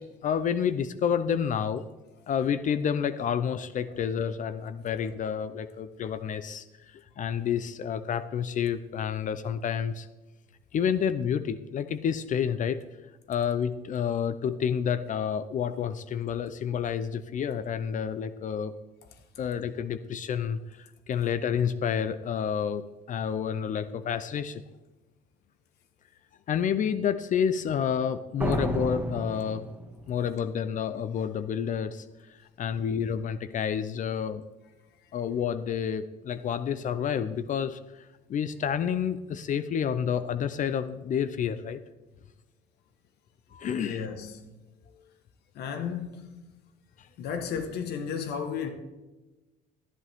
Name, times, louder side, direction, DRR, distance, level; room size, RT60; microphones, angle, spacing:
voice 1, 0.0-1.8 2.3-10.1 10.7-12.8 13.3-18.7 19.4-24.6 26.5-29.7 30.1-34.4 35.1-41.8 43.5-44.1 47.0-47.1, left 8 dB, 50° left, 0.6 m, -29 dB
sound 1, 28.4-30.2, right 1 dB, 10° right, 1.7 m, -31 dB
voice 2, 43.8-44.4 45.5-46.4 47.2-48.7, left 7 dB, 75° left, 1.5 m, -33 dB
14.0 x 11.0 x 3.6 m
cardioid pair, 110°, 17 cm